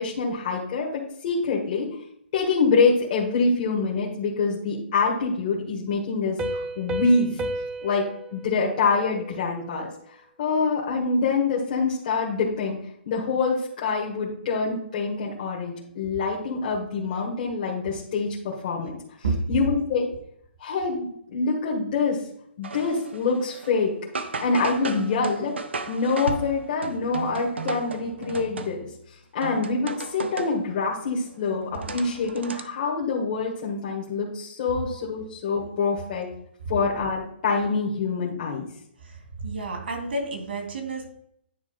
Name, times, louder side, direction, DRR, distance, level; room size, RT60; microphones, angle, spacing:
voice 1, 0.0-1.9 2.3-7.4 7.8-8.1 8.3-9.9 10.4-12.8 13.0-18.9 19.5-20.1 20.6-22.2 22.6-23.9 24.4-25.6 25.9-36.3 36.7-38.7, left 4 dB, 45° left, -5 dB, 1.8 m, -25 dB
Piano, 6.4-9.8, right 1 dB, 10° right, 0.5 m, -33 dB
sound 1, 22.6-23.8 24.2-29.0 29.4-30.7 31.1-32.6, right 4 dB, 85° right, 1.0 m, -35 dB
voice 2, 39.0-41.1, right 3 dB, 70° right, 2 dB, 2.9 m, -30 dB
9.9 x 3.4 x 5.3 m, 0.70 s
hypercardioid pair, 155°, 6 cm